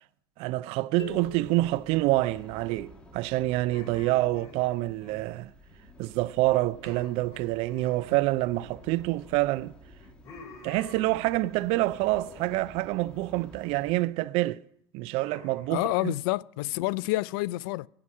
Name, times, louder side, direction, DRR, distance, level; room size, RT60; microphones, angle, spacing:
voice 1, 0.4-5.5 6.0-9.7 10.6-14.6 14.9-16.1, right 18 dB, 50° right, 0.5 m, -27 dB
sound 1, 1.0-2.9, left 8 dB, 80° left, 0.8 m, -46 dB
sound 2, 1.0-13.9, right 1 dB, 10° left, 2.6 m, -51 dB
sound 3, 3.7-6.1 6.4-6.5 6.8-9.2 9.5-11.5 11.9-12.6 12.9-13.4 13.8-14.3 15.2-15.9, left 4 dB, 25° left, 7.5 m, -51 dB
voice 2, 15.7-17.9, left 19 dB, 55° left, 0.4 m, -28 dB
16.5 x 5.9 x 9.5 m
hypercardioid pair, 90°, 13 cm